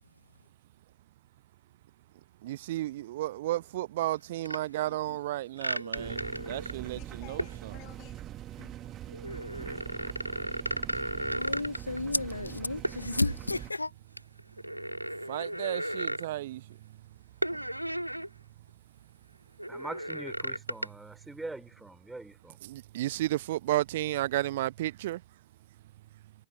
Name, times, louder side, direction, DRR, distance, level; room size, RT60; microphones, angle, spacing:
voice 1, 2.4-7.8 15.3-16.8 17.5-17.6 22.6-25.2, right 15 dB, 55° right, 0.8 m, -33 dB
sound 1, 4.4-4.6 5.6-6.9 7.4-7.6 9.1-12.0 12.8-13.0 13.4-13.6 14.2-16.3 17.4-18.3 18.7-18.8 19.6-20.9, equal, 90° right, 2.9 m, -34 dB
sound 2, 5.9-13.7, right 12 dB, 30° right, 1.8 m, -43 dB
voice 2, 6.9-8.8 9.5-10.0, left 23 dB, 40° left, 7.9 m, -54 dB
voice 3, 11.3-13.9, left 2 dB, 85° left, 1.6 m, -32 dB
voice 4, 19.7-22.6, right 2 dB, 5° right, 3.1 m, -43 dB
figure-of-eight pair, 90°, 0 cm